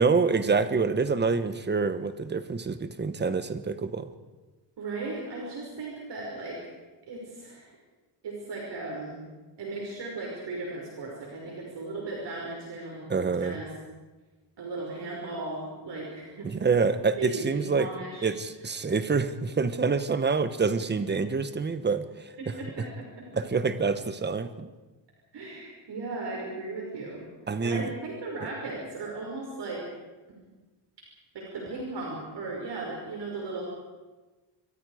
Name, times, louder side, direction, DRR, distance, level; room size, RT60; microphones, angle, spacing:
voice 1, 0.0-4.1 13.1-13.6 16.4-17.9 18.2-22.0 22.5-22.6 23.3-24.7 27.5-27.9, right 4 dB, 20° right, 11 dB, 1.1 m, -26 dB
voice 2, 4.8-6.6 7.1-7.7 8.2-9.2 9.6-13.7 14.6-16.5 17.2-18.3 22.4-23.3 25.3-27.3 27.6-29.8 30.3-30.4 31.3-33.7, right 3 dB, 60° right, -2 dB, 5.8 m, -36 dB
28.0 x 23.5 x 5.0 m, 1.2 s
wide cardioid pair, 165°, 46 cm